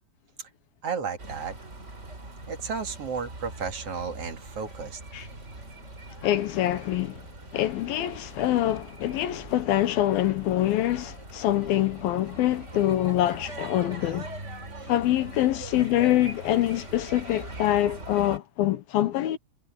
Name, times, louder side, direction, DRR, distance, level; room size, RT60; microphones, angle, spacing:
voice 1, 0.8-1.5 2.5-5.0 14.4-14.9, right 5 dB, 45° right, 2.6 m, -33 dB
sound 1, 1.2-18.4, right 2 dB, 20° right, 3.5 m, -42 dB
voice 2, 6.2-7.2 7.5-14.3 14.9-19.4, left 13 dB, 75° left, 2.7 m, -25 dB
omnidirectional pair, 4.7 m